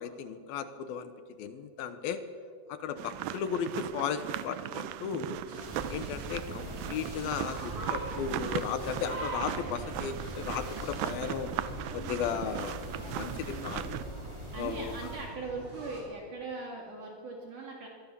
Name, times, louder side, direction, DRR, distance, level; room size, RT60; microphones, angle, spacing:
voice 1, 0.0-2.2 2.7-5.4 5.9-11.5 11.9-12.8 13.0-14.0 14.5-15.0, left 7 dB, 70° left, 10 dB, 2.7 m, -35 dB
sound 1, 3.0-14.0, right 13 dB, 80° right, 2.0 m, -38 dB
sound 2, 5.5-16.0, right 2 dB, 30° right, 6.1 m, -43 dB
sound 3, 5.6-15.4, right 1 dB, 10° right, 2.7 m, -43 dB
voice 2, 14.5-17.9, right 3 dB, 50° right, 0 dB, 3.5 m, -39 dB
25.0 x 22.0 x 7.0 m, 2.1 s
omnidirectional pair, 5.0 m